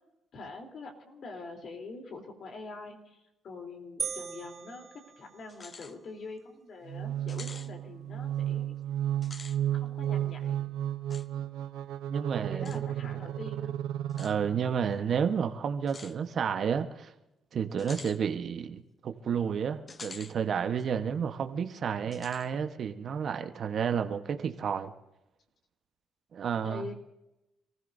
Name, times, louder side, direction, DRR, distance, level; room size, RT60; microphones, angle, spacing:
voice 1, 0.3-4.9 5.2-8.8 9.7-10.7 12.4-13.8 17.6-17.9 26.6-26.9, left 3 dB, 60° left, 2 dB, 3.6 m, -44 dB
sound 1, 4.0-5.8, right 7 dB, 40° right, 1.5 m, -39 dB
sound 2, 5.5-6.0 6.4-6.5 7.3-7.7 9.1-9.6 11.1-11.3 12.7-12.8 14.1-14.4 15.9-16.2 17.8-18.2 19.9-20.4 20.8-20.9 22.1-22.5, left 4 dB, 35° left, 0.9 m, -46 dB
sound 3, 6.9-14.8, right 11 dB, 90° right, 0.7 m, -33 dB
voice 2, 12.1-13.1 14.2-17.1 17.5-24.9 26.3-26.9, right 7 dB, 55° right, 7 dB, 1.2 m, -31 dB
27.5 x 15.5 x 2.7 m, 0.93 s
cardioid pair, 90°, 0 cm